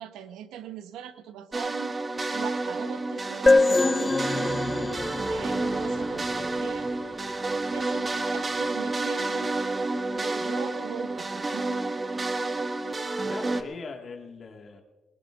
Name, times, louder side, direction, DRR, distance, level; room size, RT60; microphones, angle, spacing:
voice 1, 0.0-2.0 2.3-6.9 7.7-9.7 10.1-11.9, right 9 dB, 90° right, 10 dB, 0.9 m, -41 dB
sound 1, 1.5-13.6, right 2 dB, 25° right, 0.9 m, -29 dB
sound 2, 3.5-7.0, left 3 dB, 25° left, 0.4 m, -25 dB
voice 2, 13.2-14.8, left 4 dB, 50° left, 3 dB, 1.8 m, -40 dB
20.5 x 20.5 x 2.5 m, 1.2 s
cardioid pair, 90°, 0 cm